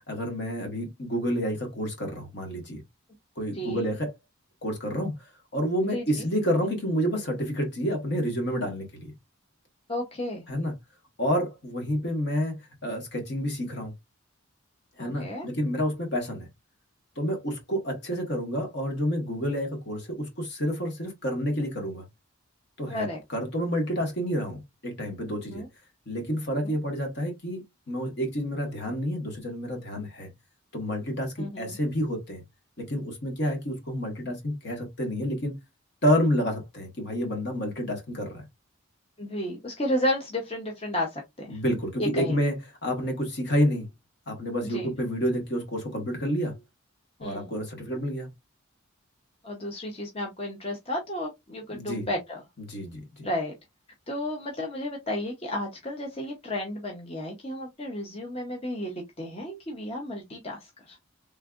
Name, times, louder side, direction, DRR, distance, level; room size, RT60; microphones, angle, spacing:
voice 1, 0.0-2.8 3.4-4.1 4.6-5.3 5.5-9.1 10.5-10.7 11.2-13.9 15.0-16.5 17.2-22.0 22.8-25.6 26.1-30.3 30.7-32.4 32.8-35.6 36.0-38.4 41.5-42.5 42.8-43.9 44.3-46.6 47.2-48.3 51.7-52.1 52.7-53.3, equal, 55° left, 1.5 m, -29 dB
voice 2, 3.5-3.9 5.9-6.0 9.9-10.4 15.0-15.5 22.9-23.2 25.5-25.7 26.6-26.7 31.4-31.8 39.2-41.6 42.0-42.4 44.6-44.9 47.2-47.5 49.4-52.4 53.2-53.5 54.1-61.0, left 1 dB, 30° left, 0.8 m, -32 dB
3.5 x 3.2 x 2.4 m
head